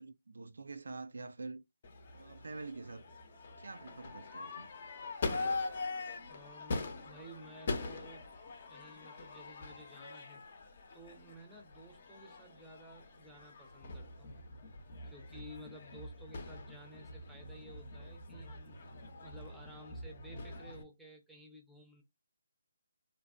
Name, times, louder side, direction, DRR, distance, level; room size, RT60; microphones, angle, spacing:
voice 1, 0.0-1.6 2.1-3.0 3.6-4.7, right 3 dB, 75° right, 0.3 m, -46 dB
Crowd / Fireworks, 1.8-20.8, left 3 dB, 45° left, 0.6 m, -43 dB
voice 2, 6.3-8.3 8.7-10.4 10.9-14.3 15.0-18.8 19.2-22.0, right 1 dB, ahead, 0.6 m, -54 dB
2.5 x 2.0 x 2.3 m
figure-of-eight pair, 155°, 0 cm